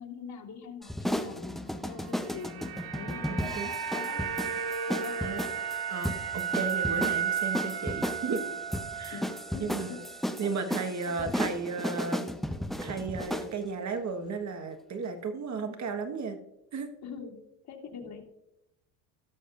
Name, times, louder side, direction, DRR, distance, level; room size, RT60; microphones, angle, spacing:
voice 1, 0.0-4.2 4.9-5.2 9.1-10.0 10.4-10.5 11.1-11.3 17.0-17.4 17.6-18.3, left 6 dB, 55° left, -3 dB, 2.9 m, -43 dB
sound 1, 0.8-13.5, equal, ahead, 0.7 m, -35 dB
sound 2, 2.1-10.4 10.6-10.8, right 7 dB, 60° right, 1.1 m, -34 dB
voice 2, 3.3-3.7 5.2-5.4 5.9-8.5 8.9-9.2 9.6-10.0 10.4-12.3 12.8-16.4 16.7-16.9, right 4 dB, 40° right, 7 dB, 1.5 m, -34 dB
17.0 x 6.5 x 2.6 m, 0.85 s
supercardioid pair, 95°, 44 cm